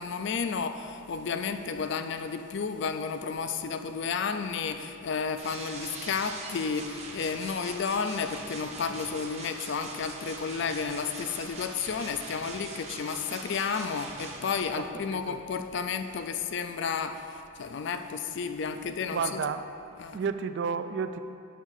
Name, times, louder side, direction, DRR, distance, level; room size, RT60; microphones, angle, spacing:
voice 1, 0.0-19.5 20.0-20.2, left 5 dB, 55° left, 9 dB, 0.4 m, -32 dB
sound 1, 5.4-14.6, right 3 dB, 30° right, 0.7 m, -42 dB
voice 2, 14.8-15.4 19.1-19.7 20.1-21.2, right 6 dB, 55° right, 10 dB, 0.3 m, -32 dB
8.2 x 3.6 x 6.4 m, 2.6 s
head